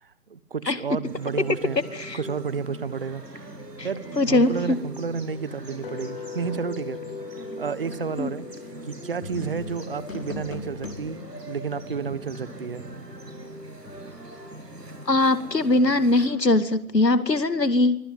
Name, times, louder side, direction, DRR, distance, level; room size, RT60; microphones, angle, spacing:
voice 1, 0.0-1.8 2.1-3.2 3.8-7.0 7.6-8.5 8.8-11.2 11.5-12.8, right 6 dB, 35° right, 18 dB, 1.5 m, -31 dB
sound 1, 1.0-16.3, right 1 dB, 85° right, 7.7 m, -41 dB
voice 2, 4.2-4.8 8.2-8.3 15.1-18.0, left 2 dB, 85° left, 13 dB, 2.3 m, -21 dB
sound 2, 5.8-11.9, left 6 dB, 35° left, 2.1 m, -41 dB
sound 3, 9.2-14.5 16.2-17.3, left 3 dB, 50° left, 5.2 m, -42 dB
26.0 x 22.5 x 9.6 m, 0.67 s
figure-of-eight pair, 155°, 48 cm